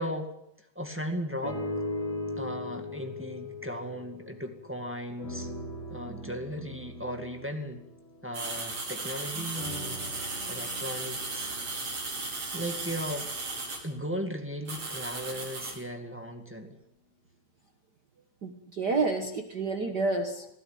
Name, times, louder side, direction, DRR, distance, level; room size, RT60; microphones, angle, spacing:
voice 1, 0.0-1.6 2.4-5.5 5.9-7.9 8.2-10.0 10.5-11.5 12.5-13.3 13.8-16.8, equal, 10° right, 4 dB, 0.6 m, -37 dB
sound 1, 1.4-4.8 5.2-8.9 9.5-13.8 14.4-14.5, left 1 dB, 45° left, 5.5 m, -40 dB
sound 2, 8.3-13.8 14.7-15.8, right 3 dB, 45° right, 6.9 m, -36 dB
voice 2, 18.4-20.5, right 3 dB, 80° right, 5 dB, 0.9 m, -29 dB
21.5 x 15.5 x 9.2 m, 0.78 s
omnidirectional pair, 4.2 m